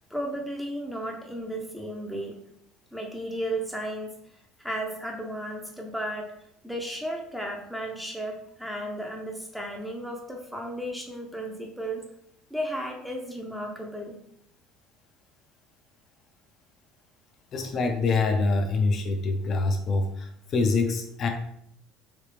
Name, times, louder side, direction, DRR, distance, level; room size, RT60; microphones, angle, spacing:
voice 1, 0.1-2.4 2.9-4.2 4.6-6.3 6.6-12.1 12.5-14.2, right 1 dB, ahead, 0 dB, 0.5 m, -34 dB
voice 2, 17.5-21.3, left 3 dB, 45° left, 4 dB, 0.4 m, -25 dB
3.3 x 2.8 x 3.2 m, 0.73 s
supercardioid pair, 100°, 0 cm